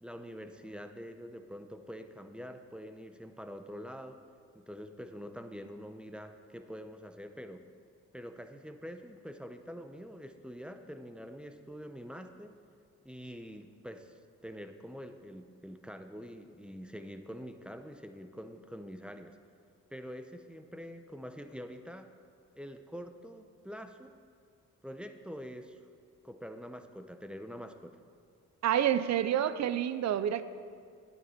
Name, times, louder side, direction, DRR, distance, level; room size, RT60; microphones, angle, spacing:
voice 1, 0.0-4.2 4.5-7.6 8.1-12.6 13.0-19.4 19.9-22.1 22.6-24.1 24.8-25.8 26.2-28.0, equal, 5° right, 7 dB, 0.7 m, -45 dB
voice 2, 28.6-30.4, right 10 dB, 60° right, 14 dB, 0.5 m, -28 dB
9.8 x 9.6 x 4.4 m, 2.1 s
supercardioid pair, 65°, 31 cm